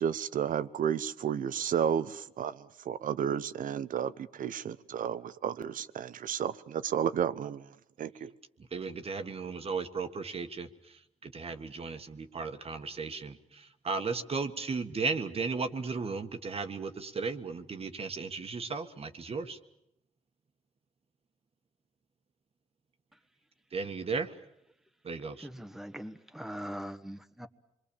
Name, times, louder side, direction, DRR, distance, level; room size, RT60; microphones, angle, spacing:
voice 1, 0.0-7.7 8.0-8.3, right 8 dB, 80° right, 15 dB, 0.9 m, -32 dB
voice 2, 8.7-10.7 11.2-13.3 13.8-19.6 23.7-24.3 25.0-25.5, right 4 dB, 45° right, 7 dB, 1.6 m, -35 dB
voice 3, 25.4-27.5, equal, 5° right, 9 dB, 1.3 m, -41 dB
27.0 x 23.0 x 7.1 m, 0.84 s
cardioid pair, 100°, 14 cm